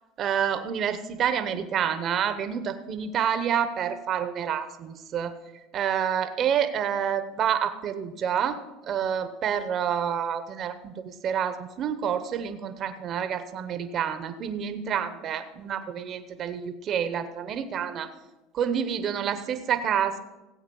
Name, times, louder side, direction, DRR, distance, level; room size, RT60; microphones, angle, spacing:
voice 1, 0.2-5.3 5.7-8.6 8.9-18.1 18.5-20.2, right 8 dB, 45° right, 10 dB, 0.9 m, -28 dB
16.0 x 7.9 x 5.4 m, 1.1 s
supercardioid pair, 95°, 0 cm